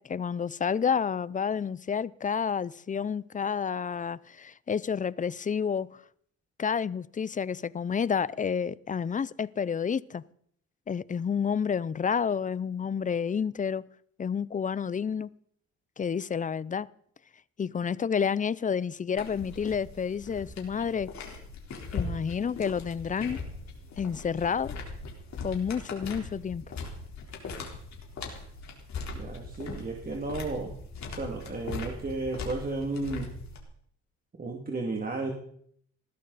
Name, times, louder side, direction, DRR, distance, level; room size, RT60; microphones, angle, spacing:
voice 1, 0.0-5.9 6.6-10.2 10.9-13.8 14.2-15.3 16.0-16.9 17.6-21.1 21.9-23.4 24.0-24.7 25.4-26.7, left 7 dB, 25° left, 0.5 m, -30 dB
sound 1, 19.2-33.6, left 3 dB, 65° left, 4.0 m, -40 dB
voice 2, 29.1-30.7 31.1-33.3 34.4-35.3, right 2 dB, 30° right, 2.5 m, -33 dB
20.0 x 14.0 x 4.1 m
cardioid pair, 90°, 30 cm